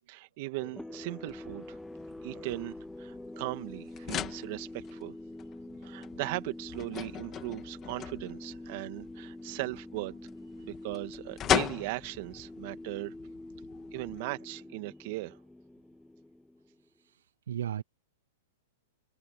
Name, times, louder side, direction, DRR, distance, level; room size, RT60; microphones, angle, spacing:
voice 1, 0.1-1.8 2.2-5.2 5.8-10.1 10.6-13.1 13.9-15.4, right 22 dB, 50° right, 2.1 m, -38 dB
sound 1, 0.6-16.9, left 1 dB, 5° left, 0.9 m, -46 dB
sound 2, 1.3-14.2, left 11 dB, 25° left, 2.6 m, -39 dB
voice 2, 5.7-6.1 9.5-9.6 10.6-10.7 17.0-17.8, right 10 dB, 80° right, 0.8 m, -39 dB
hypercardioid pair, 135°, 0 cm